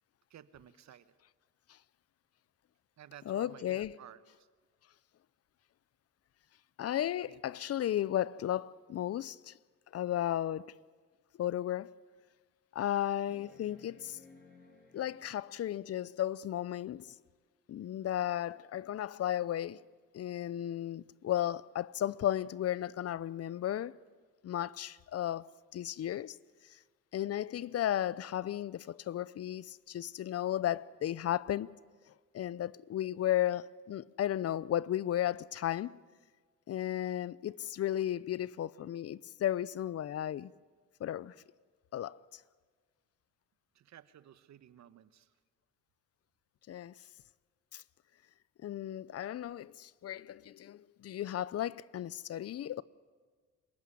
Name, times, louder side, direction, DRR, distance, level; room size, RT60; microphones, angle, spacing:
voice 1, 0.3-1.1 3.0-4.5 7.3-7.4 43.7-45.3, right 10 dB, 65° right, 1.1 m, -55 dB
voice 2, 3.3-3.9 6.8-9.5 9.9-10.7 11.4-11.9 12.7-14.2 14.9-17.1 17.7-19.8 20.1-24.0 24.4-26.3 27.1-31.7 32.3-36.0 36.7-40.5 41.0-41.3 41.9-42.2 46.7-46.9 47.7-47.8 48.6-52.8, left 12 dB, 55° left, 0.6 m, -34 dB
sound 1, 11.1-11.2 11.8-11.9 13.3-15.7 17.5-17.6, left 2 dB, 30° left, 5.7 m, -59 dB
25.5 x 15.5 x 9.9 m
cardioid pair, 90°, 30 cm